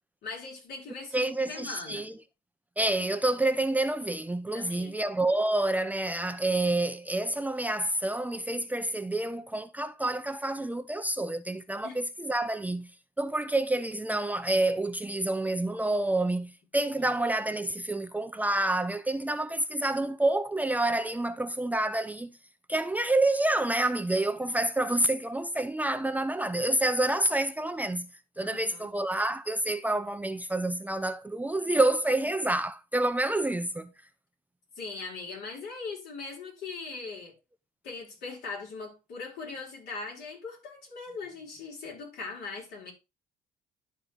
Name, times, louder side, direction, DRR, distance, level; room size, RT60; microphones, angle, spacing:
voice 1, 0.2-2.0 4.5-4.9 11.8-12.0 17.0-17.1 28.4-28.9 34.8-37.3 37.8-42.9, left 4 dB, 70° left, 4.5 m, -40 dB
voice 2, 1.1-2.2 2.8-12.9 13.2-22.3 22.7-28.1 28.4-33.9, right 1 dB, 10° right, 0.5 m, -28 dB
11.5 x 4.2 x 3.6 m
cardioid pair, 110°, 17 cm